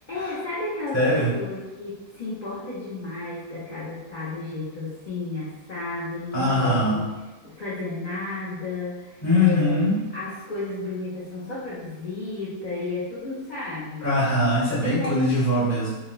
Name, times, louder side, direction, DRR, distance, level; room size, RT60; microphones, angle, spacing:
voice 1, 0.0-7.0 7.4-9.8 10.1-14.1 14.9-15.5, left 2 dB, 50° left, -11 dB, 0.5 m, -32 dB
voice 2, 0.9-1.3 6.3-7.0 9.2-10.0 14.0-15.9, left 1 dB, 15° left, -8 dB, 0.8 m, -22 dB
4.0 x 2.1 x 2.3 m, 1.1 s
omnidirectional pair, 1.7 m